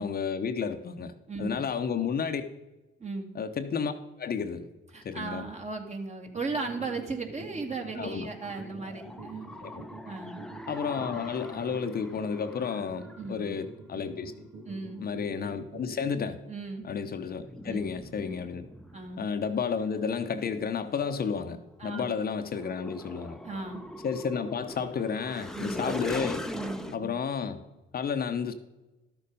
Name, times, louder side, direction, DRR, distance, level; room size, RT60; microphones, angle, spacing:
voice 1, 0.0-1.1 1.4-2.4 3.3-4.7 5.0-5.4 8.0-8.3 9.6-9.8 10.7-14.3 15.0-16.4 16.8-18.7 19.2-23.4 24.0-26.4 26.9-27.6 27.9-28.5, left 6 dB, 50° left, 8 dB, 0.9 m, -31 dB
voice 2, 1.3-1.6 3.0-3.3 4.9-9.5 10.0-10.4 13.2-13.5 14.6-15.0 16.5-16.9 17.7-17.9 18.9-19.2 21.8-22.1 23.4-23.9 25.5-26.0 26.5-27.1, right 3 dB, 35° right, 3 dB, 2.1 m, -36 dB
sound 1, 6.3-16.3, right 4 dB, 75° right, 2.1 m, -45 dB
sound 2, 7.4-13.4 17.1-21.6 22.3-27.0, left 1 dB, 5° left, 0.8 m, -42 dB
12.5 x 6.9 x 5.4 m, 1.1 s
cardioid pair, 90°, 20 cm